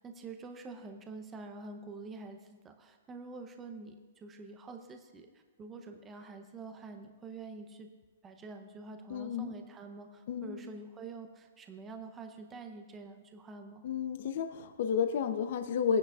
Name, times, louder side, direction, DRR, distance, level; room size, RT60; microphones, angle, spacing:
voice 1, 0.0-7.9 8.2-13.8, right 3 dB, 15° right, 5 dB, 0.7 m, -47 dB
voice 2, 9.1-9.5 10.3-10.5 13.8-16.0, left 7 dB, 55° left, 7 dB, 0.7 m, -31 dB
19.5 x 9.9 x 2.4 m, 1.4 s
hypercardioid pair, 160°, 0 cm